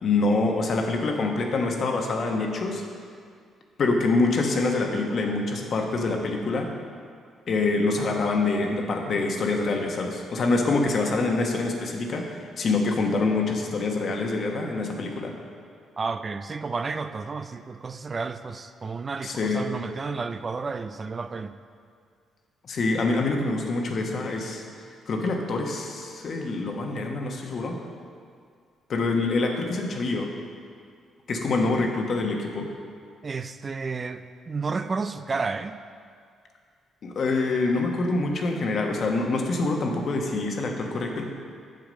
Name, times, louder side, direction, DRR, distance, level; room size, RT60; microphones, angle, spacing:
voice 1, 0.0-2.8 3.8-6.7 7.5-15.3 19.2-19.7 22.6-24.6 25.1-27.8 28.9-30.3 31.3-32.7 37.0-41.3, left 3 dB, 55° left, 2 dB, 1.1 m, -25 dB
voice 2, 16.0-21.5 33.2-35.8, right 4 dB, 35° right, 10 dB, 0.3 m, -31 dB
7.7 x 7.1 x 5.2 m, 2.2 s
cardioid pair, 90°, 0 cm